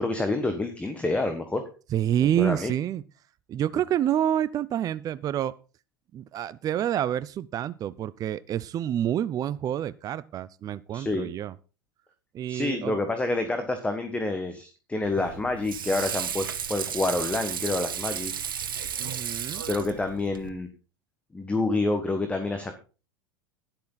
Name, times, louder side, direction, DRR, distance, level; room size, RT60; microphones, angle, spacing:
voice 1, 0.0-1.6 2.4-2.7 10.9-11.3 12.5-18.3 19.7-20.7 21.3-22.7, left 2 dB, 10° left, 7 dB, 1.5 m, -28 dB
voice 2, 1.9-3.0 3.5-5.5 6.1-11.5 12.3-13.0 19.0-19.6, right 11 dB, 35° right, 16 dB, 0.6 m, -28 dB
Water / Sink (filling or washing), 15.0-20.5, right 8 dB, 85° right, 1.3 m, -33 dB
11.5 x 11.0 x 4.0 m, 0.35 s
hypercardioid pair, 90°, 11 cm